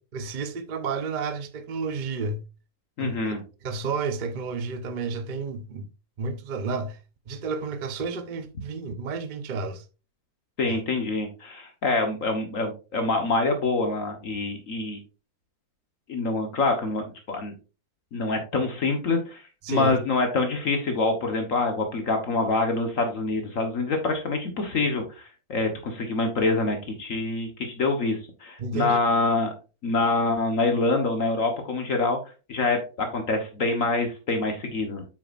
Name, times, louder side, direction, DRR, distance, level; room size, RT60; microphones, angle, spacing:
voice 1, 0.1-2.4 3.0-3.3 3.6-5.9 6.2-7.0 7.3-9.8 10.7-10.8 19.6-20.0 28.6-29.0, right 4 dB, 40° right, 0.7 m, -31 dB
voice 2, 3.0-3.4 10.6-15.0 16.1-17.5 18.1-19.4 19.7-29.5 29.8-32.2 32.5-35.0, left 3 dB, 60° left, 1.5 m, -26 dB
8.4 x 6.2 x 2.5 m
omnidirectional pair, 1.6 m